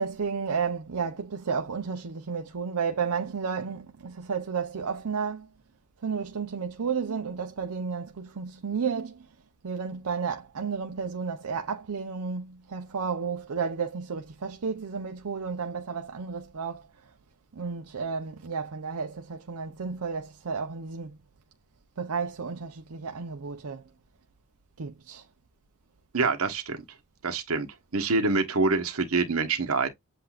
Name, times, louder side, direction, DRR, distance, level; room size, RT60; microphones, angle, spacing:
voice 1, 0.0-5.5 6.0-9.3 9.6-16.9 17.5-21.2 22.0-23.8 24.8-25.2, right 5 dB, 90° right, 0.7 m, -32 dB
voice 2, 26.1-26.8 27.2-27.7 27.9-29.9, right 3 dB, 70° right, 1.2 m, -25 dB
7.8 x 2.7 x 2.4 m
head